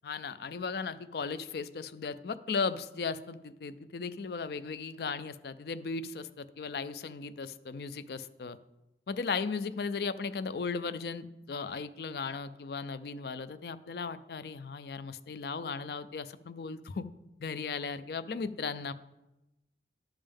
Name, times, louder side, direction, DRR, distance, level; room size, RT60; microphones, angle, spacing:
voice 1, 0.0-8.6 9.1-17.1 17.4-18.9, left 5 dB, 60° left, 14 dB, 0.4 m, -36 dB
11.5 x 5.4 x 3.5 m, 0.96 s
head